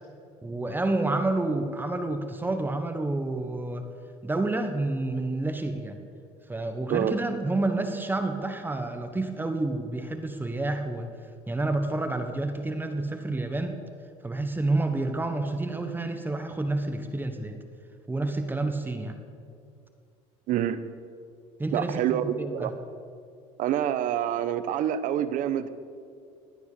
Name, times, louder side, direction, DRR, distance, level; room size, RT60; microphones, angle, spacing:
voice 1, 0.4-3.9 4.2-6.0 6.5-11.1 11.4-13.8 14.2-17.6 18.1-19.2 21.6-22.7, right 2 dB, 15° right, 6 dB, 1.4 m, -29 dB
voice 2, 20.5-20.8 21.7-22.7 23.6-25.7, right 10 dB, 60° right, 12 dB, 1.1 m, -27 dB
19.0 x 10.0 x 6.9 m, 2.3 s
supercardioid pair, 110°, 15 cm